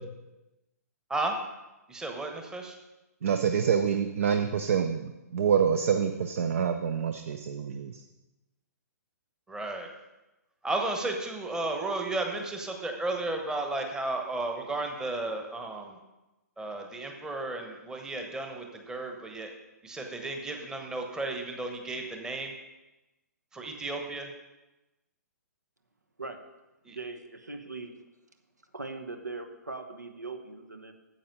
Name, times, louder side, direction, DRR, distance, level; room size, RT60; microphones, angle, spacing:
voice 1, 1.9-2.8 9.5-9.9 10.6-16.0 16.6-19.5 19.8-22.5 23.5-24.3 26.8-27.0, right 2 dB, 5° right, 3 dB, 1.0 m, -33 dB
voice 2, 3.2-8.0, right 7 dB, 55° right, 8 dB, 0.6 m, -27 dB
voice 3, 26.9-27.9 28.7-30.9, right 3 dB, 80° right, 7 dB, 1.1 m, -40 dB
9.4 x 7.6 x 5.4 m, 1.0 s
figure-of-eight pair, 120°, 9 cm